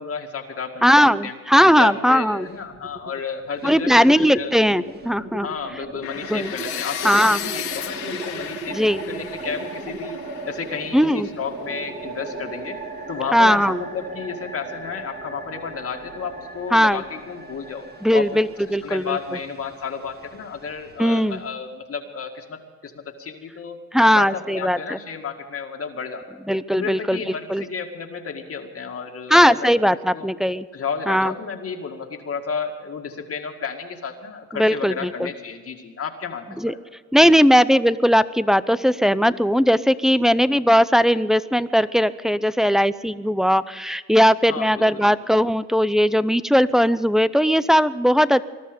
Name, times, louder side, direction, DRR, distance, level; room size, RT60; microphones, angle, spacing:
voice 1, 0.0-1.3 1.7-3.9 4.3-4.6 5.4-8.8 9.1-10.2 10.5-12.8 13.1-17.9 18.1-18.3 18.7-22.9 23.2-23.8 24.2-26.3 26.7-29.7 30.1-30.3 30.7-36.8 40.1-40.3 44.5-45.1, left 6 dB, 50° left, 3 dB, 2.1 m, -32 dB
voice 2, 0.8-2.5 3.6-5.5 6.3-6.5 7.0-7.5 8.7-9.0 10.9-11.3 13.3-13.8 16.7-17.0 18.0-19.2 21.0-21.4 23.9-25.0 26.5-27.6 29.3-30.7 31.1-31.3 34.5-35.3 36.6-36.7 37.1-48.4, equal, ahead, 14 dB, 0.6 m, -18 dB
sound 1, 2.4-3.2 3.5-21.5, right 3 dB, 35° right, 2.0 m, -37 dB
sound 2, 6.0-11.9, left 9 dB, 90° left, 2.4 m, -34 dB
20.5 x 12.5 x 5.2 m, 1.5 s
cardioid pair, 90°, 30 cm